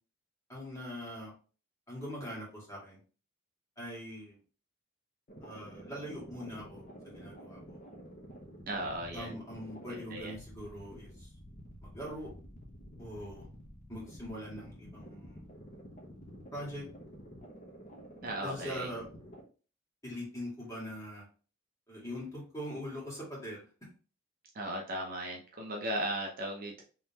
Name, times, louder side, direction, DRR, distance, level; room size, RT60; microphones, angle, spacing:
voice 1, 0.5-1.3 1.9-3.0 3.8-4.4 5.4-6.8 7.1-7.8 9.1-11.3 11.8-12.3 13.0-13.5 13.9-15.4 16.5-16.9 18.4-19.1 20.0-21.3 21.9-23.6, equal, 15° left, -5 dB, 1.8 m, -42 dB
sound 1, 5.3-19.4, equal, 35° left, 0.8 m, -50 dB
voice 2, 8.7-9.4 9.9-10.3 18.2-18.9 24.5-26.8, right 1 dB, 40° right, 0 dB, 0.7 m, -37 dB
3.7 x 3.0 x 2.8 m, 0.37 s
head